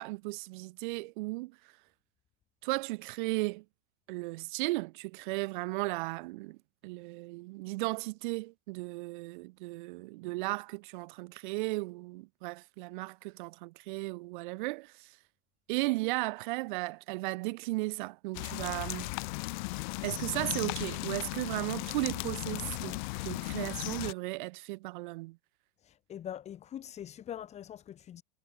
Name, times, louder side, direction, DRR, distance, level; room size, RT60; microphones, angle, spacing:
voice 1, 0.0-1.6 2.6-3.6 4.1-6.6 6.8-15.2 15.7-19.1 20.0-25.4, right 23 dB, 40° right, 1.3 m, -35 dB
sound 1, 18.3-24.1, left 24 dB, 40° left, 1.2 m, -36 dB
voice 2, 25.8-28.2, left 10 dB, 20° left, 5.0 m, -43 dB
supercardioid pair, 180°, 36 cm